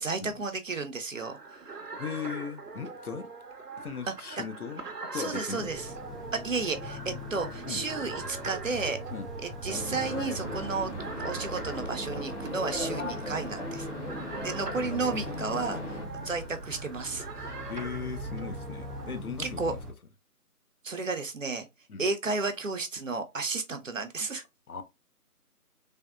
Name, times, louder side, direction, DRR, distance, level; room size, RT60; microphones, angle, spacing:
voice 1, 0.0-1.6 4.1-4.2 5.1-5.9 6.3-9.0 9.4-10.9 11.2-13.9 14.4-15.8 16.2-17.5 19.4-19.8 20.8-21.6 22.0-24.4, right 4 dB, 60° right, 0.5 m, -32 dB
sound 1, 1.1-19.2, right 4 dB, 90° right, 0.8 m, -43 dB
voice 2, 2.0-3.3 3.8-4.8 5.1-5.7 7.6-7.8 9.1-9.3 14.9-16.4 17.7-19.8 21.9-22.0 24.7-24.8, left 6 dB, 70° left, 0.6 m, -38 dB
sound 2, 5.6-19.9, equal, ahead, 0.4 m, -42 dB
sound 3, 9.7-16.1, left 1 dB, 50° left, 1.0 m, -37 dB
3.4 x 2.1 x 2.2 m
figure-of-eight pair, 170°, 46 cm